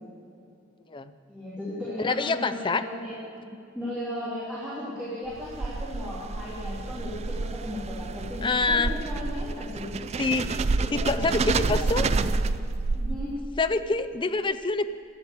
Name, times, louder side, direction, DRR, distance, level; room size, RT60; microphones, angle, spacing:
voice 1, 1.3-9.9 10.8-12.3 12.9-13.3, left 1 dB, 5° right, -10 dB, 3.1 m, -36 dB
voice 2, 2.0-2.8 8.4-8.9 10.2-10.5 10.9-12.1 13.6-14.9, left 3 dB, 25° left, 11 dB, 0.5 m, -26 dB
sound 1, 5.3-13.6, right 3 dB, 30° right, 0.3 m, -29 dB
12.5 x 10.0 x 8.3 m, 2.6 s
head